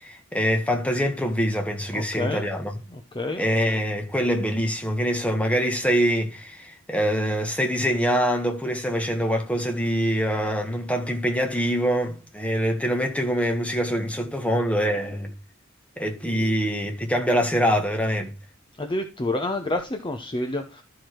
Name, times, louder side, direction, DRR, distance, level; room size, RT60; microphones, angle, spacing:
voice 1, 0.0-2.8 3.3-15.3 16.0-18.3, equal, 5° left, 1.5 m, -24 dB
voice 2, 1.9-2.5 2.9-3.4 18.8-20.8, left 2 dB, 25° left, 0.8 m, -28 dB
12.5 x 4.8 x 4.5 m
head